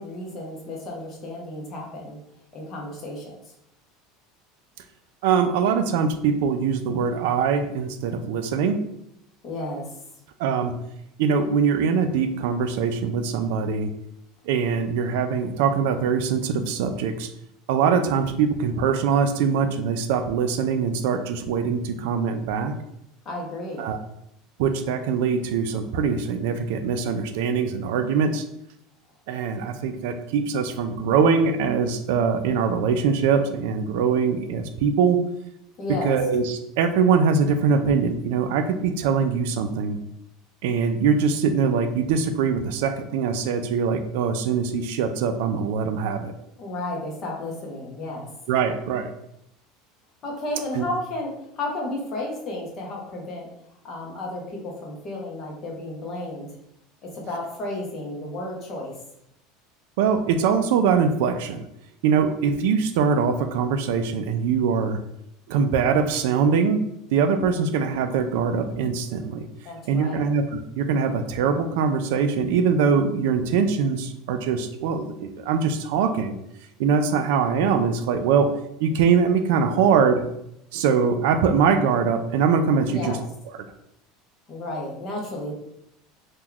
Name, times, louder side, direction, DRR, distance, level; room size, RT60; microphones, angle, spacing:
voice 1, 0.0-2.2 2.5-3.3 9.4-9.9 23.2-23.9 35.8-36.2 46.6-48.3 50.2-53.5 53.8-56.5 57.0-58.9 69.6-70.2 82.9-83.2 84.5-85.5, left 2 dB, 25° left, -1 dB, 0.7 m, -32 dB
voice 2, 5.2-8.8 10.4-10.7 11.2-13.9 14.5-17.3 17.7-22.7 23.8-24.0 24.6-28.4 29.3-35.2 36.0-40.0 40.6-46.3 48.5-49.1 50.7-50.8 60.0-61.7 62.0-65.0 65.5-66.8 67.1-69.5 69.9-76.4 76.8-78.5 78.8-80.2 80.7-83.2, right 6 dB, 65° right, 8 dB, 0.3 m, -22 dB
2.9 x 2.2 x 3.7 m, 0.78 s
cardioid pair, 180°, 0 cm